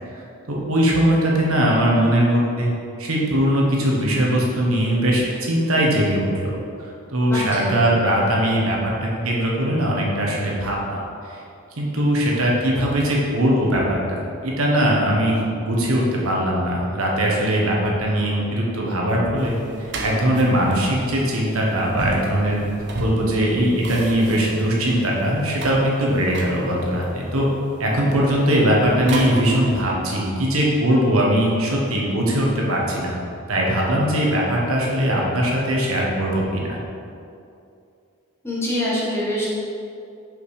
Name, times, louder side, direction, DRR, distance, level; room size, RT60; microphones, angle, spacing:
voice 1, 0.5-2.7 3.0-11.0 11.3-11.4 11.8-22.6 23.0-27.5 27.8-33.2 33.5-36.8, equal, 75° right, -3 dB, 1.3 m, -20 dB
sound 1, 19.4-29.8, right 1 dB, 55° right, 0.9 m, -34 dB
voice 2, 38.4-39.4, left 1 dB, 10° left, -7 dB, 1.4 m, -24 dB
5.8 x 5.2 x 4.9 m, 2.5 s
head